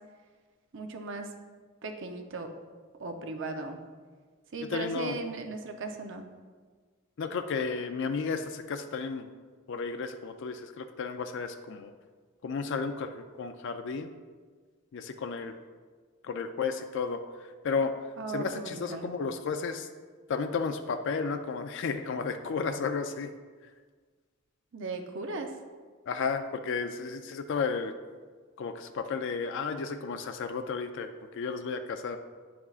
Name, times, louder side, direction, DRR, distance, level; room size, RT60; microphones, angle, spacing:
voice 1, 0.7-1.3 1.8-2.5 3.0-3.8 4.5-6.3 18.2-19.0 24.7-25.5, right 3 dB, 60° right, 5 dB, 0.7 m, -37 dB
voice 2, 4.6-5.2 7.2-9.3 9.7-11.9 12.4-14.1 14.9-15.5 16.2-17.9 18.3-19.9 20.3-23.3 26.1-27.9 28.6-32.2, left 5 dB, 60° left, 7 dB, 0.4 m, -33 dB
9.2 x 6.0 x 2.4 m, 1.5 s
head